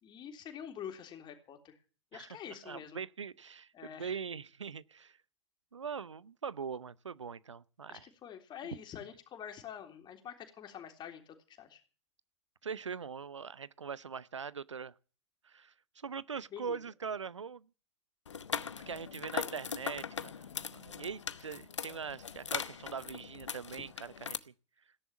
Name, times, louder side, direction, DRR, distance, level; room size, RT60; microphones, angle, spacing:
voice 1, 0.0-1.8 2.1-3.0 3.7-4.2 7.9-11.8 16.5-16.8, left 9 dB, 30° left, 3.5 m, -46 dB
voice 2, 2.1-5.2 5.7-8.1 12.6-14.9 15.4-17.7 18.9-20.5 20.7-24.5, right 6 dB, 80° right, 0.7 m, -42 dB
sound 1, 18.3-24.4, left 7 dB, 80° left, 0.9 m, -40 dB
17.0 x 10.5 x 7.2 m
figure-of-eight pair, 90°, 15 cm